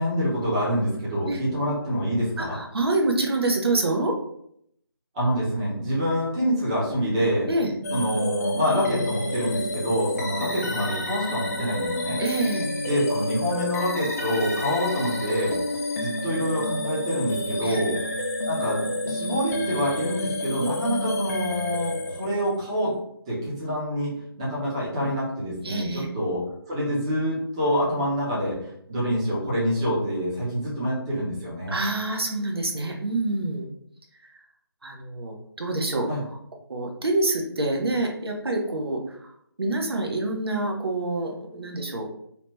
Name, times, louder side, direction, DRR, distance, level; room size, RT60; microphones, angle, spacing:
voice 1, 0.0-2.5 5.1-7.5 7.9-12.2 12.8-15.6 16.0-18.0 18.5-22.9 23.3-24.1 24.4-28.6 28.9-31.7 36.1-36.2, equal, 15° right, -7 dB, 0.6 m, -26 dB
voice 2, 2.4-4.2 7.5-7.7 10.0-10.3 12.2-12.7 17.6-17.8 25.6-26.1 31.7-33.7 34.8-36.1 36.7-39.3 39.6-42.1, right 2 dB, 70° right, 1 dB, 0.7 m, -26 dB
sound 1, 7.8-22.6, left 1 dB, 40° left, 0.5 m, -29 dB
2.8 x 2.1 x 3.2 m, 0.71 s
figure-of-eight pair, 160°, 13 cm